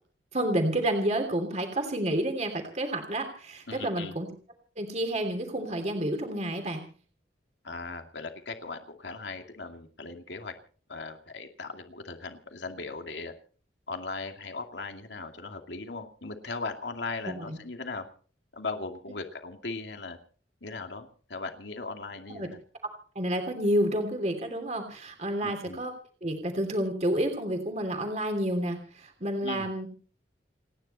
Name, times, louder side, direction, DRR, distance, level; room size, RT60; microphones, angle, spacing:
voice 1, 0.3-4.3 4.8-6.8 17.2-17.6 22.3-22.5 23.1-25.9 26.2-29.9, right 1 dB, 40° right, 5 dB, 3.0 m, -29 dB
voice 2, 3.7-4.1 7.6-10.5 10.9-13.3 13.9-18.0 18.5-20.2 20.6-22.6 25.4-25.8 29.4-29.7, left 3 dB, 80° left, 5 dB, 2.5 m, -38 dB
29.5 x 10.5 x 4.3 m, 0.43 s
head